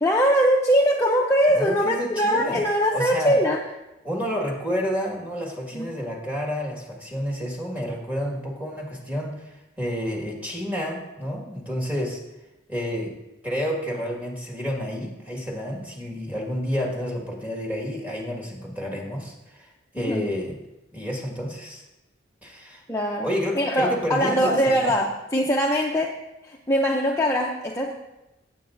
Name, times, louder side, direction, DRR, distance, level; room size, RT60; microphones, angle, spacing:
voice 1, 0.0-3.6 5.7-5.9 20.0-20.2 22.9-23.3 23.5-26.1 26.4-28.0, equal, 15° left, -1 dB, 0.6 m, -22 dB
voice 2, 1.6-2.6 2.9-3.4 4.0-12.2 12.7-13.1 13.4-19.7 19.9-20.6 20.9-21.8 22.4-22.8 23.2-24.9, equal, 10° right, -1 dB, 1.7 m, -30 dB
16.5 x 7.6 x 2.6 m, 0.96 s
head